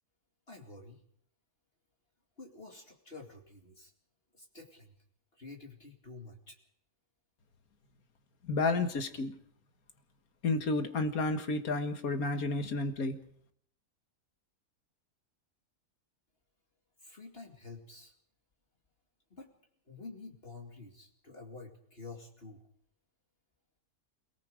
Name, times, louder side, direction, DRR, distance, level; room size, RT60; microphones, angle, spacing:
voice 1, 0.5-1.0 2.4-3.9 4.3-4.9 5.3-6.6 17.0-18.1 19.3-19.5 19.9-22.6, left 3 dB, 40° left, 1 dB, 2.7 m, -49 dB
voice 2, 8.4-9.3 10.4-13.2, left 3 dB, 70° left, 8 dB, 2.0 m, -31 dB
27.5 x 18.5 x 5.1 m, 0.66 s
omnidirectional pair, 1.6 m